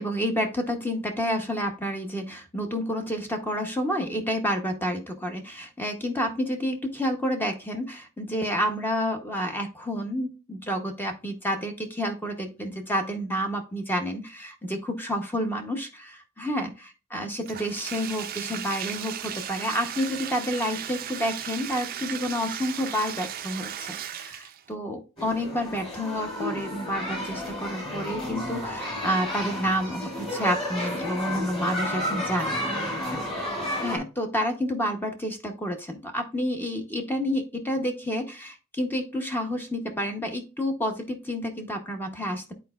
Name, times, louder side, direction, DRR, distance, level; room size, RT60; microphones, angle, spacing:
voice 1, 0.0-33.2 33.7-42.5, equal, 10° left, 4 dB, 0.7 m, -29 dB
Bathtub (filling or washing), 17.4-24.7, right 9 dB, 45° right, 0.4 m, -36 dB
sound 1, 25.2-34.0, left 1 dB, 25° left, 2.3 m, -32 dB
10.0 x 4.3 x 2.3 m, 0.31 s
head